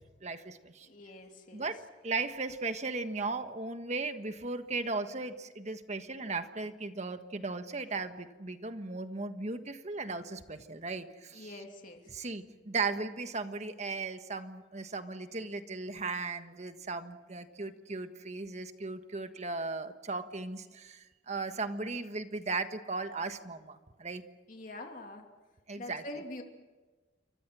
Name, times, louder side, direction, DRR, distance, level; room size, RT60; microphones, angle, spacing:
voice 1, 0.2-0.9 1.5-11.6 12.1-24.2 25.7-26.0, right 3 dB, 40° right, 8 dB, 1.4 m, -37 dB
voice 2, 0.8-1.7 11.3-12.2 24.5-25.3 25.8-26.4, left 1 dB, 45° left, 3 dB, 3.0 m, -45 dB
28.5 x 24.5 x 6.2 m, 1.2 s
head